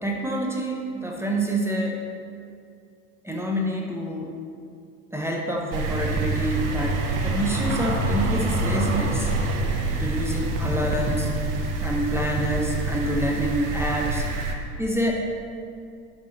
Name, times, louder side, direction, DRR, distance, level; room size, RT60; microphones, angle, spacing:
voice 1, 0.0-2.0 3.2-4.3 5.1-9.3 10.0-11.3 11.8-14.2 14.8-15.1, right 1 dB, 5° right, -1 dB, 0.9 m, -27 dB
sound 1, 5.7-14.5, right 2 dB, 45° right, 1.2 m, -26 dB
12.0 x 5.5 x 3.2 m, 2.4 s
hypercardioid pair, 90°, 46 cm